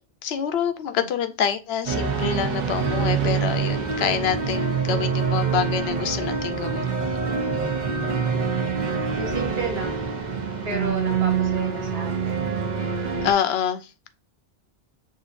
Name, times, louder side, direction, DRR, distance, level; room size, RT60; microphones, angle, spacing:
voice 1, 0.2-6.9 13.2-13.9, left 8 dB, 80° left, 0.8 m, -26 dB
sound 1, 1.9-13.3, right 6 dB, 50° right, 0.8 m, -25 dB
voice 2, 7.6-7.9 9.1-10.1 10.6-12.4, right 3 dB, 70° right, 1.4 m, -33 dB
6.4 x 2.6 x 2.4 m
omnidirectional pair, 1.1 m